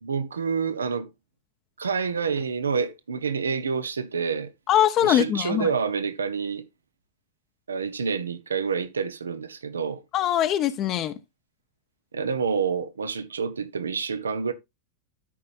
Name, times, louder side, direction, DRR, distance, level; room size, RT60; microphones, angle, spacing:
voice 1, 0.0-1.1 1.8-4.5 5.0-6.6 7.7-10.0 12.1-14.5, right 5 dB, 70° right, 0.8 m, -28 dB
voice 2, 4.7-5.7 10.1-11.2, left 11 dB, 35° left, 0.8 m, -22 dB
13.0 x 5.3 x 2.6 m
figure-of-eight pair, 90°, 0 cm